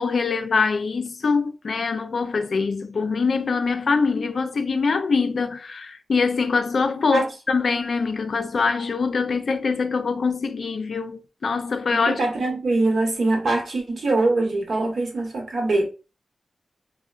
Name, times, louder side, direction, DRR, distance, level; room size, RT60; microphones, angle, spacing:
voice 1, 0.0-12.2, left 4 dB, 65° left, 0.4 m, -23 dB
voice 2, 11.9-15.8, right 2 dB, 75° right, 1.1 m, -23 dB
3.6 x 2.1 x 2.3 m
wide cardioid pair, 95°, 0 cm